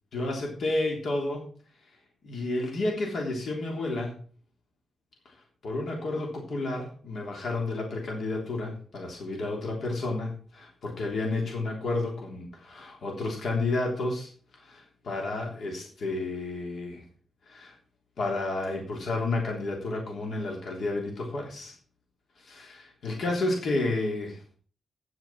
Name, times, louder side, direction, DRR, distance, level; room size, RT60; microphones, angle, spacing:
voice 1, 0.1-1.4 2.2-4.2 5.6-14.3 14.6-17.0 17.5-17.7 18.2-21.7 22.4-24.4, left 2 dB, 60° left, 0 dB, 3.4 m, -31 dB
9.3 x 7.4 x 6.1 m, 0.42 s
cardioid pair, 120°, 0 cm